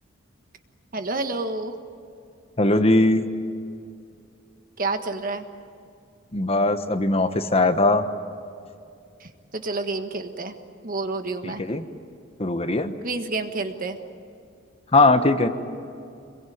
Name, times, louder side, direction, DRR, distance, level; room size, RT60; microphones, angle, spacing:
voice 1, 0.9-1.8 4.8-5.4 9.2-10.6 10.8-11.6 13.0-14.0, right 3 dB, 45° right, 7 dB, 1.6 m, -29 dB
voice 2, 2.6-3.3 6.3-8.0 11.4-11.8 12.4-12.9 14.9-15.5, left 2 dB, 30° left, 9 dB, 1.1 m, -20 dB
26.5 x 22.5 x 9.5 m, 2.4 s
head